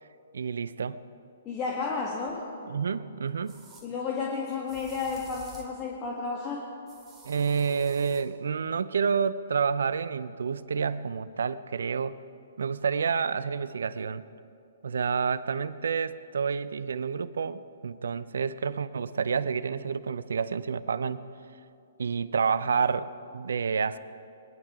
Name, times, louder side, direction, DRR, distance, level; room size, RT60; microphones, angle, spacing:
voice 1, 0.3-1.0 2.7-3.5 7.2-12.2 12.6-14.2 14.8-21.2 22.0-24.0, right 6 dB, 75° right, 16 dB, 0.5 m, -29 dB
voice 2, 1.4-2.5 3.8-6.7, left 4 dB, 30° left, -3 dB, 1.8 m, -32 dB
sound 1, 2.3-2.4 3.5-3.9 4.7-5.8 6.9-8.3, right 1 dB, 15° right, 2.2 m, -50 dB
21.5 x 11.0 x 5.0 m, 2.6 s
hypercardioid pair, 125°, 0 cm